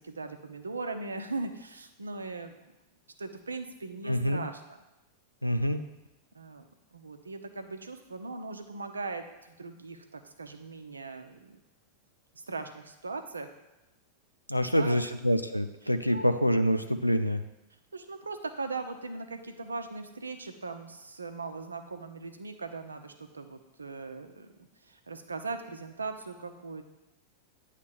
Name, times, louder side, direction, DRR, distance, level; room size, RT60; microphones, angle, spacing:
voice 1, 0.0-2.7 3.2-4.8 6.3-11.6 12.3-13.5 14.6-15.1 15.8-16.3 17.9-24.5 24.8-26.8, right 3 dB, 75° right, 7 dB, 0.7 m, -39 dB
voice 2, 4.0-4.4 5.4-5.8 14.5-17.4, equal, 90° left, 8 dB, 0.4 m, -26 dB
9.3 x 3.3 x 6.7 m, 0.98 s
figure-of-eight pair, 90°, 0 cm